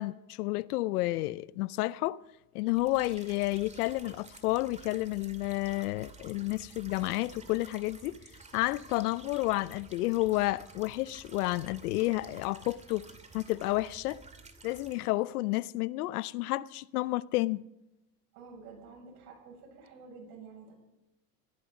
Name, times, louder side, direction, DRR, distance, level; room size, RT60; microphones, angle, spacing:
voice 1, 0.0-2.2 2.5-8.2 8.5-14.2 14.6-17.6, left 19 dB, 85° left, 0.7 m, -31 dB
sound 1, 2.7-15.1, right 4 dB, 15° right, 2.2 m, -52 dB
voice 2, 18.3-20.7, right 4 dB, 75° right, 7.3 m, -50 dB
17.5 x 14.0 x 5.3 m
supercardioid pair, 105°, 44 cm